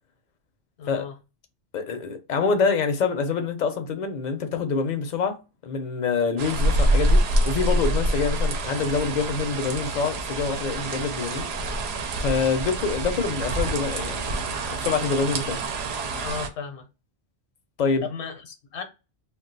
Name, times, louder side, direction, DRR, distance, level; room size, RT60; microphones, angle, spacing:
voice 1, 0.8-1.2 16.1-16.9 18.0-18.8, left 6 dB, 80° left, 1.0 m, -35 dB
voice 2, 1.7-11.5 12.2-14.6 14.8-15.6 17.8-18.1, left 5 dB, 50° left, 0.6 m, -26 dB
sound 1, 6.4-16.5, right 1 dB, 70° right, 0.8 m, -26 dB
2.3 x 2.3 x 3.8 m
omnidirectional pair, 1.1 m